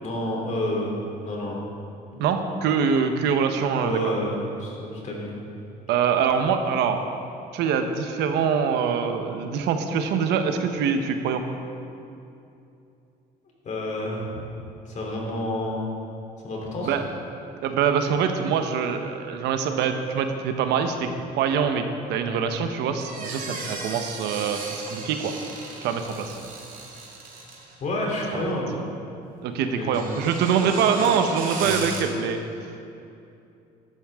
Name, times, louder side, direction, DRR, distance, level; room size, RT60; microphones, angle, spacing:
voice 1, 0.0-0.9 1.2-1.7 2.1-2.2 3.8-5.4 13.6-14.4 14.8-15.8 16.4-17.0 27.8-28.7 29.7-30.1, left 1 dB, 45° left, -2 dB, 3.2 m, -29 dB
voice 2, 2.2-4.0 5.9-7.0 7.5-11.4 16.8-17.0 17.6-25.3 25.8-26.4 28.3-28.4 29.4-32.4, right 6 dB, 85° right, 6 dB, 1.0 m, -24 dB
sound 1, 23.0-27.8 29.8-32.0, right 3 dB, 55° right, 2.3 m, -36 dB
13.0 x 12.5 x 3.6 m, 2.7 s
cardioid pair, 110°, 17 cm